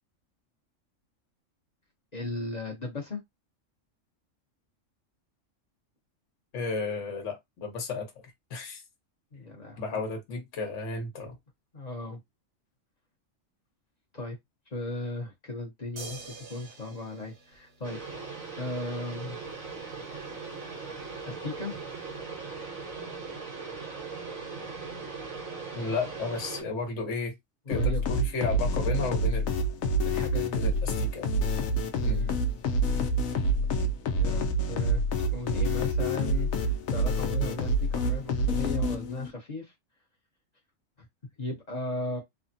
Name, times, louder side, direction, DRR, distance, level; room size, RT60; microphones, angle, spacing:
voice 1, 2.1-3.2 9.3-10.0 11.7-12.2 14.1-14.4 14.7-18.0 18.6-19.4 21.3-21.8 27.7-28.0 30.0-30.6 32.0-32.5 34.2-34.4 34.7-35.0 35.3-39.7 41.4-42.2, left 2 dB, 35° left, 0.9 m, -36 dB
voice 2, 6.5-8.1 8.5-8.8 9.8-11.3 25.7-27.3 27.7-29.6 30.5-31.3 32.0-32.3, left 4 dB, 70° left, 1.3 m, -33 dB
sound 1, 16.0-18.4 20.2-20.3, right 3 dB, 60° right, 1.1 m, -46 dB
sound 2, 17.8-26.6, right 4 dB, 85° right, 1.4 m, -39 dB
sound 3, 27.7-39.3, right 1 dB, 85° left, 1.1 m, -27 dB
3.3 x 2.1 x 2.6 m
omnidirectional pair, 1.4 m